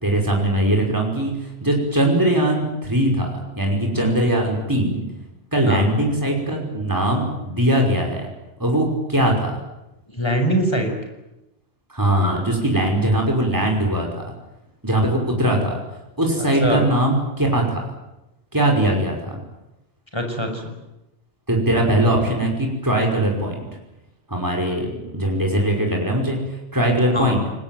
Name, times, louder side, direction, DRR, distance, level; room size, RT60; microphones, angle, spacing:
voice 1, 0.0-5.0 5.5-8.3 8.6-9.6 11.9-14.2 14.8-15.8 16.2-17.8 18.5-19.4 21.5-23.7 24.3-27.4, right 1 dB, 20° right, 0 dB, 5.5 m, -21 dB
voice 2, 10.1-10.9 16.6-16.9 20.1-20.7 27.1-27.4, equal, 25° left, 4 dB, 5.9 m, -23 dB
28.0 x 21.5 x 9.3 m, 0.93 s
omnidirectional pair, 1.0 m